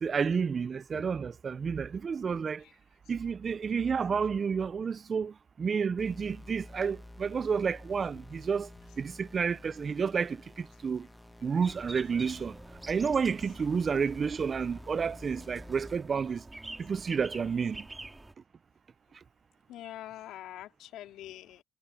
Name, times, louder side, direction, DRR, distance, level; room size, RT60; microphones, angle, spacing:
voice 1, 0.0-2.6 3.1-8.7 9.0-11.1 11.4-12.6 12.9-16.4 16.8-17.9 19.1-19.2, right 6 dB, 45° right, 0.4 m, -30 dB
sound 1, 6.0-16.0, left 1 dB, 10° left, 1.3 m, -50 dB
sound 2, 11.6-18.3, right 2 dB, 15° right, 4.0 m, -47 dB
voice 2, 19.7-21.6, left 13 dB, 90° left, 3.2 m, -44 dB
cardioid pair, 90°, 0 cm